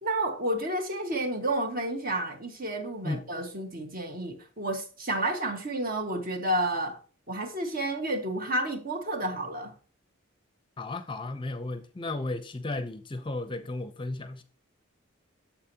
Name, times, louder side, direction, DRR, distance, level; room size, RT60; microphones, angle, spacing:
voice 1, 0.0-7.0 7.3-9.7, right 1 dB, 45° right, 1.6 m, -30 dB
voice 2, 10.8-14.4, left 2 dB, 25° left, 0.6 m, -34 dB
8.7 x 7.3 x 2.9 m
head